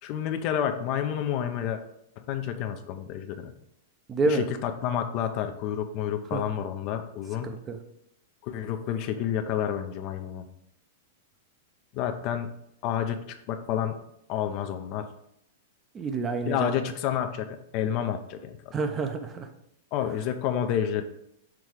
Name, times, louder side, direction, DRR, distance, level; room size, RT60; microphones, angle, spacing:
voice 1, 0.0-1.8 2.2-3.5 4.2-7.5 8.4-10.5 11.9-12.5 12.8-14.0 14.3-15.1 16.4-18.7 19.9-21.0, left 9 dB, 45° left, 7 dB, 0.6 m, -29 dB
voice 2, 4.1-4.4 6.3-6.4 7.4-7.8 15.9-16.7 18.7-19.5, right 3 dB, 20° right, 6 dB, 0.7 m, -28 dB
6.0 x 3.5 x 4.9 m, 0.77 s
hypercardioid pair, 115°, 0 cm